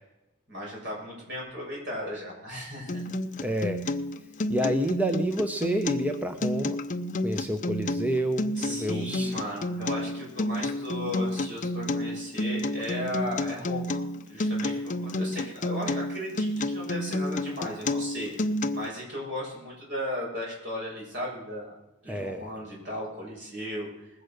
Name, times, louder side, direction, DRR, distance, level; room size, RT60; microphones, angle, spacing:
voice 1, 0.5-3.1 8.6-14.0 14.3-18.4 18.7-21.7 22.0-23.9, equal, 55° right, -3 dB, 6.7 m, -36 dB
Acoustic guitar, 2.9-18.9, left 1 dB, 35° left, 0.6 m, -30 dB
voice 2, 3.4-3.8 4.5-6.8 7.2-9.3 22.1-22.5, right 1 dB, 5° right, 6 dB, 0.6 m, -29 dB
20.0 x 8.2 x 6.6 m, 0.93 s
head